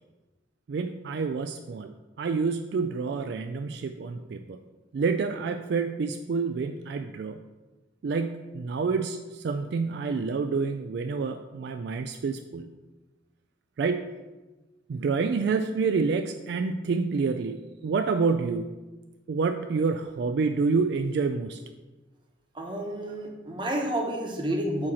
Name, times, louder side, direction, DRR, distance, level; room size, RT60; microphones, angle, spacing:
voice 1, 0.7-1.9 2.2-4.6 4.9-7.4 8.0-12.7 13.8-14.0 14.9-18.7 19.3-21.6, right 4 dB, 60° right, 7 dB, 0.3 m, -28 dB
voice 2, 22.5-24.9, right 1 dB, 25° right, 1 dB, 0.9 m, -30 dB
8.5 x 2.9 x 6.2 m, 1.2 s
head